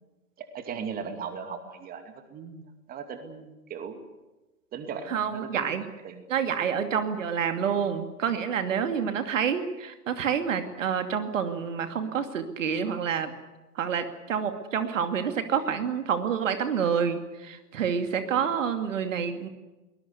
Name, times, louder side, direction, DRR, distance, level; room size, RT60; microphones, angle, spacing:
voice 1, 0.4-4.0 4.7-6.3 9.0-9.1 18.4-18.5, right 6 dB, 20° right, 8 dB, 2.4 m, -38 dB
voice 2, 5.1-5.8 6.3-13.3 13.7-19.5, right 7 dB, 55° right, 8 dB, 2.5 m, -28 dB
23.5 x 20.0 x 8.2 m, 1.1 s
figure-of-eight pair, 110°, 46 cm